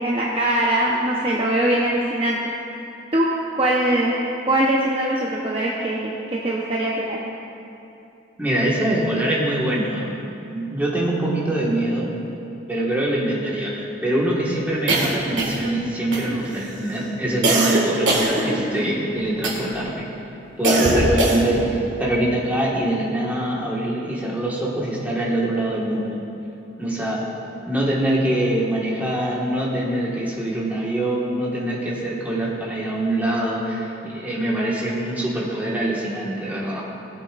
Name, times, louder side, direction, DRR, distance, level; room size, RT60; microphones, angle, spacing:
voice 1, 0.0-2.4 3.1-3.3 3.5-4.1 4.4-7.2, right 1 dB, 30° right, -5 dB, 0.8 m, -21 dB
voice 2, 8.4-10.1 10.4-12.1 12.7-20.1 20.6-26.2 26.8-27.2 27.7-36.8, right 1 dB, 10° right, -5 dB, 1.5 m, -24 dB
sound 1, 14.9-15.8 16.1-16.6 17.4-18.9 19.4-19.9 20.6-21.7, right 1 dB, 80° right, 1.7 m, -22 dB
18.5 x 8.2 x 2.5 m, 2.8 s
head